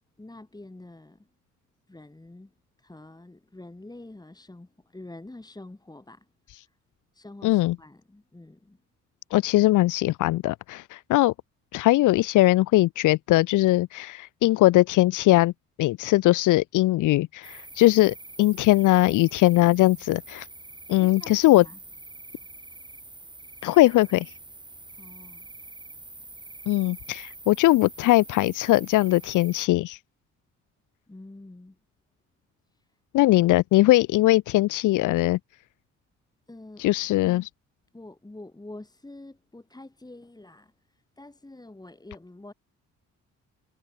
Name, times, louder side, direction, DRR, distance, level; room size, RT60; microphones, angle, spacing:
voice 1, 0.2-1.3 1.9-2.5 2.8-6.8 7.1-8.8 21.0-21.8 25.0-25.5 31.1-31.8 32.7-33.0 33.2-33.3 36.5-37.1 37.9-42.5, left 2 dB, 15° left, 6.2 m, -46 dB
voice 2, 7.4-7.7 9.3-11.3 11.7-15.5 15.8-20.5 20.9-21.6 23.6-24.3 26.7-30.0 33.1-35.4 36.8-37.5, left 17 dB, 85° left, 0.9 m, -20 dB
sound 1, 17.4-29.7, right 2 dB, 15° right, 6.6 m, -45 dB
cardioid pair, 90°, 30 cm